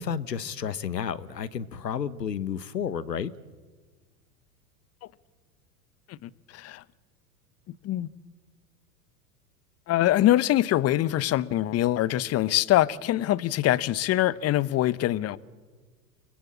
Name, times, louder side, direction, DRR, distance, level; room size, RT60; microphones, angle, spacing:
voice 1, 0.0-3.3, left 7 dB, 90° left, 1.1 m, -31 dB
voice 2, 6.1-6.8 7.8-8.1 9.9-15.4, left 14 dB, 30° left, 0.9 m, -24 dB
29.0 x 20.5 x 8.6 m
hypercardioid pair, 95°, 48 cm